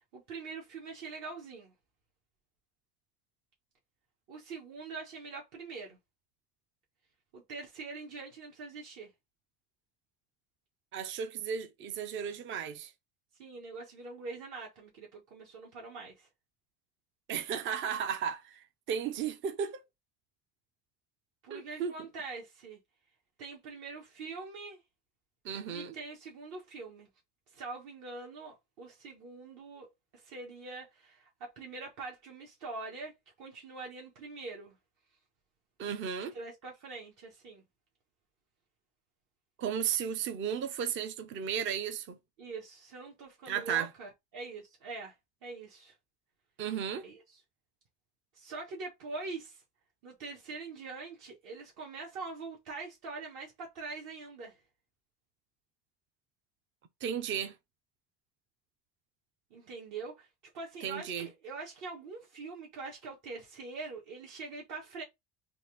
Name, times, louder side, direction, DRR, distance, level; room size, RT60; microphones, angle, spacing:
voice 1, 0.1-1.7 4.3-6.0 7.3-9.1 13.4-16.3 21.4-22.8 23.4-24.8 25.7-27.1 27.5-33.1 33.4-34.7 36.3-37.6 42.4-45.1 45.4-45.9 47.0-47.4 48.3-49.6 50.0-54.6 59.5-60.3 60.5-65.0, right 4 dB, 55° right, 1.4 m, -44 dB
voice 2, 10.9-12.9 17.3-19.8 21.5-21.9 25.4-26.0 35.8-36.4 39.6-42.2 43.5-43.9 46.6-47.1 57.0-57.5 60.8-61.3, right 8 dB, 35° right, 0.6 m, -34 dB
4.1 x 2.6 x 3.4 m
cardioid pair, 140°, 36 cm